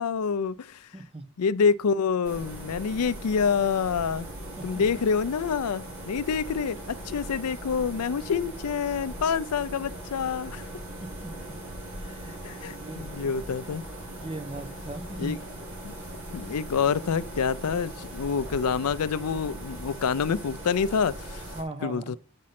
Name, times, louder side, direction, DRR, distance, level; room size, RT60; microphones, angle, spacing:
voice 1, 0.0-0.9 1.4-4.3 4.6-10.7 12.4-13.8 15.2-15.4 15.8-15.9 16.3-21.5 21.8-22.2, left 6 dB, 85° left, 0.5 m, -27 dB
voice 2, 0.9-1.2 4.6-4.8 11.0-11.3 11.9-12.3 12.7-13.3 14.2-15.4 21.5-22.2, right 2 dB, 25° right, 1.0 m, -38 dB
sound 1, 2.2-21.6, right 1 dB, 60° right, 3.1 m, -40 dB
7.4 x 5.3 x 5.8 m
head